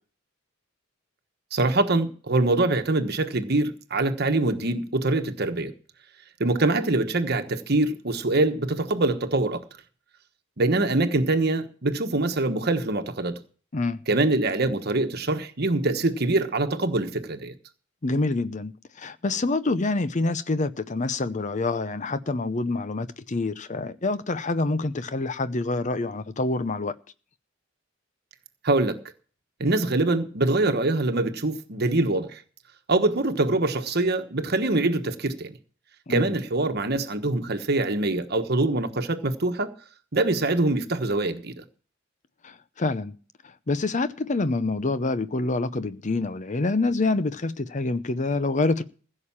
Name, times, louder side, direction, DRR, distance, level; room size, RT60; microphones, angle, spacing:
voice 1, 1.5-5.7 6.4-9.6 10.6-13.4 14.1-17.5 28.6-29.0 29.6-32.4 32.9-35.5 36.1-39.7 40.1-41.6, right 2 dB, 50° right, 1.3 m, -24 dB
voice 2, 13.7-14.0 18.0-26.9 36.1-36.3 42.4-43.1 43.7-48.8, left 3 dB, 40° left, 0.7 m, -26 dB
15.5 x 6.8 x 7.2 m
head